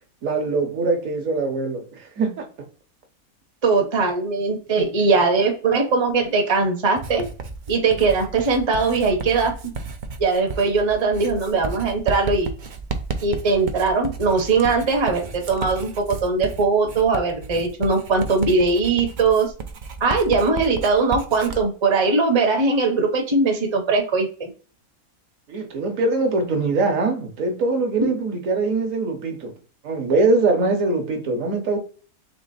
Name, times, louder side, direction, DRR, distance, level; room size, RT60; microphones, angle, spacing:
voice 1, 0.2-2.5 4.8-4.9 25.5-29.5 29.8-31.8, right 3 dB, 65° right, 1.2 m, -22 dB
voice 2, 3.6-7.2 7.7-9.7 10.2-12.5 13.2-19.5 20.0-24.5, right 4 dB, 25° right, 0.6 m, -20 dB
Writing, 7.0-21.6, right 4 dB, 85° right, 0.4 m, -33 dB
3.7 x 3.2 x 4.0 m
omnidirectional pair, 1.5 m